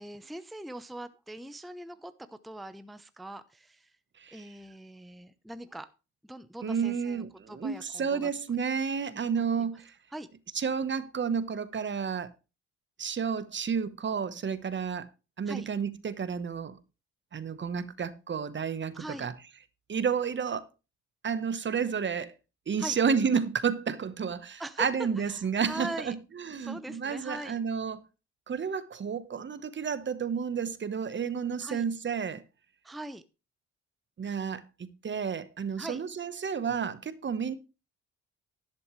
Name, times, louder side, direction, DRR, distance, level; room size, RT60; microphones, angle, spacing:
voice 1, 0.0-4.0 4.3-5.9 6.2-8.3 9.1-9.3 9.6-9.7 10.1-10.3 15.5-15.7 18.9-19.3 22.8-23.0 24.6-26.2 26.6-27.5 31.6-31.8 32.8-33.2 35.8-36.0, right 1 dB, ahead, 0.7 m, -42 dB
voice 2, 6.6-9.9 10.5-12.3 13.0-15.1 15.4-16.8 17.3-19.3 19.9-20.6 21.2-22.3 22.7-26.2 26.4-28.0 28.5-32.4 34.2-37.6, right 6 dB, 40° right, 1.1 m, -31 dB
11.5 x 11.0 x 3.2 m
cardioid pair, 90°, 30 cm